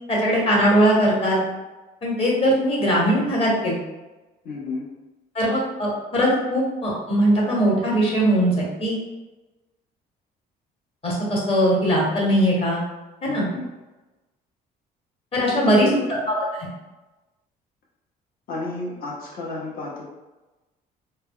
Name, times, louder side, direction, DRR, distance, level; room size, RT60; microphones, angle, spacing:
voice 1, 0.1-1.4 2.0-3.8 5.3-9.0 11.0-12.8 13.2-13.4 15.3-15.9 16.3-16.7, equal, 35° left, -3 dB, 1.1 m, -20 dB
voice 2, 4.4-4.9 13.2-13.7 15.5-16.2 18.5-20.0, left 3 dB, 60° left, -4 dB, 0.8 m, -31 dB
2.2 x 2.1 x 3.6 m, 1.1 s
cardioid pair, 110°, 17 cm